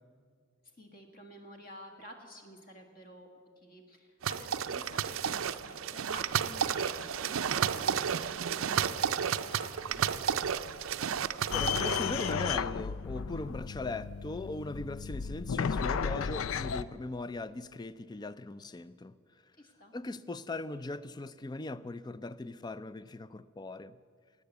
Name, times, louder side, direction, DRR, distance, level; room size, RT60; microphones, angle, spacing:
voice 1, 0.8-10.1 19.6-19.9, equal, 45° left, 3 dB, 1.8 m, -51 dB
sound 1, 4.2-12.3, right 8 dB, 80° right, 0.5 m, -32 dB
sound 2, 11.5-16.8, left 6 dB, 80° left, 0.4 m, -33 dB
voice 2, 11.5-19.1 19.9-24.0, left 2 dB, 20° left, 16 dB, 0.4 m, -39 dB
17.5 x 9.5 x 8.1 m, 2.1 s
head